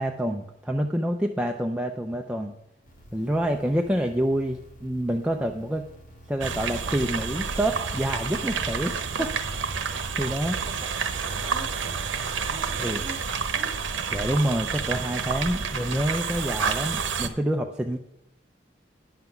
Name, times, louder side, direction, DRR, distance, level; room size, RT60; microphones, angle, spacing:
voice 1, 0.0-2.5 3.1-5.8 6.3-9.3 9.7-10.6 12.8-13.0 14.1-18.0, right 1 dB, 5° right, 2 dB, 0.4 m, -27 dB
sound 1, 2.8-13.3, right 1 dB, 45° left, 2.4 m, -50 dB
sound 2, 6.4-17.3, right 5 dB, 85° right, 0.8 m, -29 dB
voice 2, 10.5-12.0 12.5-13.7, right 1 dB, 35° right, 3 dB, 1.4 m, -44 dB
10.5 x 5.7 x 5.8 m, 0.83 s
head